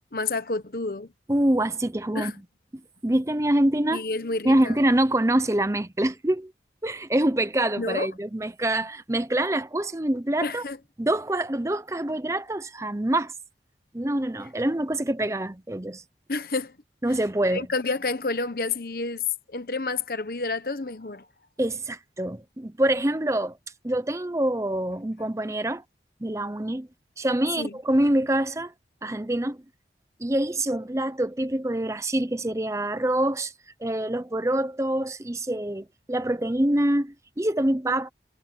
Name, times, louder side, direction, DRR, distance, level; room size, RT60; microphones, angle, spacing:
voice 1, 0.1-1.1 2.1-2.3 3.9-4.8 7.8-8.1 10.4-10.8 16.3-16.7 17.5-19.2 19.5-21.2 27.6-27.7, left 3 dB, 55° left, 1.1 m, -29 dB
voice 2, 1.3-2.3 3.0-4.0 4.4-6.5 6.8-10.6 11.0-13.3 13.9-16.0 17.0-17.7 21.6-23.6 23.8-25.8 26.2-26.9 27.2-28.7 29.0-29.6 30.2-33.5 33.8-38.1, right 1 dB, 15° right, 0.7 m, -25 dB
head